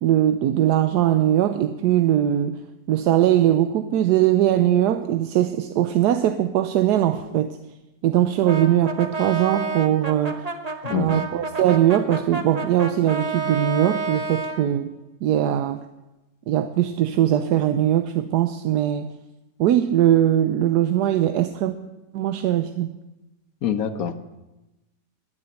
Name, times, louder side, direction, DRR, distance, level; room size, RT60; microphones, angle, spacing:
voice 1, 0.0-2.6 2.9-7.6 8.0-10.4 10.9-14.9 15.2-15.8 16.5-19.1 19.6-21.8 22.1-22.9, right 11 dB, 70° right, 9 dB, 1.1 m, -20 dB
Brass instrument, 8.4-14.6, right 4 dB, 30° right, 0.9 m, -29 dB
voice 2, 10.8-11.3 23.6-24.2, left 7 dB, 60° left, 9 dB, 1.1 m, -25 dB
10.5 x 9.8 x 8.0 m, 1.0 s
omnidirectional pair, 1.9 m